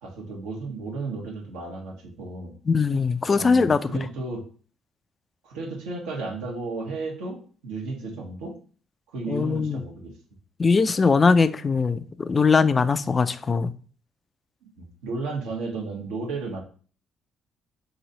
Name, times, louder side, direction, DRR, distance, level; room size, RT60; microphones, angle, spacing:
voice 1, 0.0-2.5 3.3-4.4 5.4-8.5 9.1-10.1 14.8-16.6, right 3 dB, 75° right, 1.0 m, -33 dB
voice 2, 2.7-3.9 9.3-9.8 10.6-13.7, left 4 dB, 35° left, 0.3 m, -21 dB
3.0 x 2.7 x 3.9 m
hypercardioid pair, 50°, 0 cm